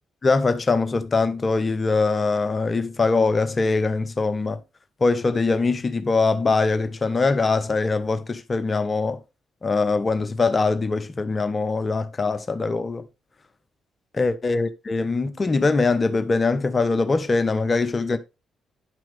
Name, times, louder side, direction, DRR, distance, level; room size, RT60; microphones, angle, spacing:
voice 1, 0.2-4.6 5.0-9.2 9.6-13.1 14.1-18.2, left 3 dB, 30° left, 0.8 m, -22 dB
9.9 x 5.9 x 3.4 m
figure-of-eight pair, 40°, 0 cm